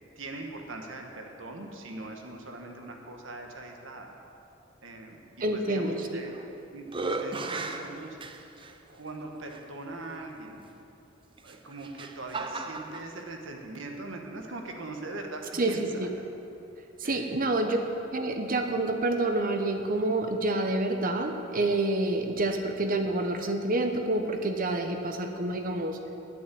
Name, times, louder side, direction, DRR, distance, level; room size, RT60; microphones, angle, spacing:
voice 1, 0.1-4.2 4.8-5.2 5.5-6.3 6.7-8.2 8.9-10.7 11.4-16.1 17.0-17.4 22.5-22.6, right 2 dB, 75° right, 2 dB, 1.4 m, -41 dB
voice 2, 5.4-6.2 15.5-16.1 17.0-17.8 18.1-26.0, right 2 dB, 45° right, 5 dB, 1.0 m, -28 dB
sound 1, 6.0-6.5 6.9-8.7 9.5-9.6 11.4-13.1, right 3 dB, 25° right, 0.6 m, -35 dB
9.0 x 8.5 x 8.4 m, 2.8 s
head